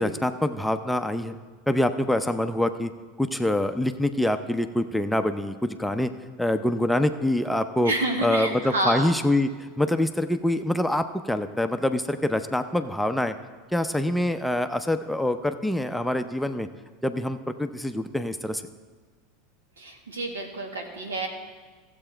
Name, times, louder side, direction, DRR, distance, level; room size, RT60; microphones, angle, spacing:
voice 1, 0.0-1.4 1.7-2.9 3.2-6.1 6.4-7.9 8.2-13.3 13.7-16.7 17.0-18.6, left 1 dB, 5° left, 8 dB, 0.6 m, -25 dB
voice 2, 7.8-9.1 19.8-21.3, right 1 dB, 80° right, 2 dB, 1.7 m, -28 dB
15.0 x 7.7 x 4.5 m, 1.4 s
figure-of-eight pair, 80°, 0 cm